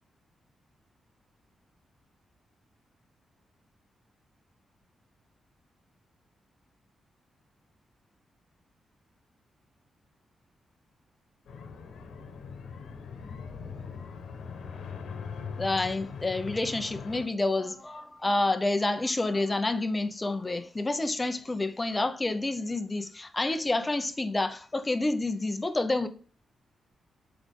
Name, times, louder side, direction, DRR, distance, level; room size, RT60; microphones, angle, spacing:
sound 1, 11.5-17.3, left 5 dB, 75° left, 1.1 m, -41 dB
voice 1, 15.6-26.1, left 2 dB, 20° left, 0.7 m, -29 dB
7.1 x 4.9 x 3.6 m
cardioid pair, 120°, 0 cm